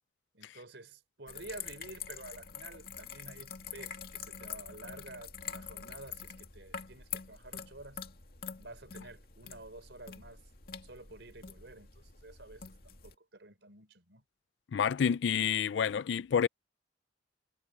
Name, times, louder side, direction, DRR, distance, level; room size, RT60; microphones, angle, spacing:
voice 1, 0.3-8.0 8.6-10.4 10.8-14.2, right 2 dB, 75° right, 4.0 m, -50 dB
sound 1, 1.3-13.1, left 7 dB, 55° left, 2.4 m, -46 dB
voice 2, 14.7-16.5, left 7 dB, 80° left, 0.4 m, -28 dB
head